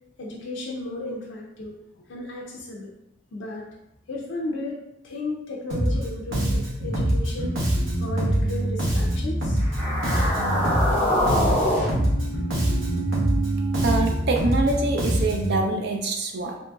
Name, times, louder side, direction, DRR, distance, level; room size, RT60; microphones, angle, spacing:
voice 1, 0.2-2.9 3.3-3.7 4.1-4.8 5.0-7.6 8.0-9.6 12.5-13.1, left 2 dB, 65° left, -2 dB, 0.4 m, -34 dB
Bass guitar, 5.7-6.1 6.3-11.0 11.3-15.6, right 1 dB, 75° right, 0.8 m, -24 dB
sound 1, 9.6-14.0, equal, 10° left, 0.7 m, -26 dB
voice 2, 13.8-16.6, right 3 dB, 55° right, 2 dB, 0.4 m, -25 dB
2.8 x 2.6 x 2.3 m, 0.88 s
head